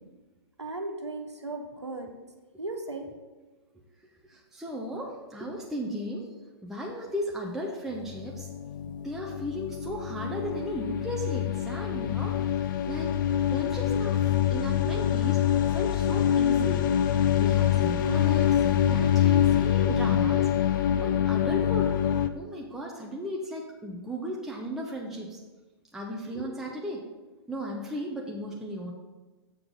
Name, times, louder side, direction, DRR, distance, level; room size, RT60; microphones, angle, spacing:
voice 1, 0.6-2.1 2.6-3.1, right 2 dB, 90° right, 2 dB, 1.2 m, -36 dB
voice 2, 4.2-6.3 6.6-8.5 9.0-13.1 13.5-14.2 14.5-15.4 15.7-16.9 17.4-21.9 22.3-25.4 25.9-27.0 27.5-28.9, equal, 5° right, -2 dB, 0.7 m, -36 dB
sound 1, 8.1-22.3, left 10 dB, 45° left, 0.5 m, -25 dB
7.0 x 3.7 x 6.2 m, 1.2 s
figure-of-eight pair, 120°, 14 cm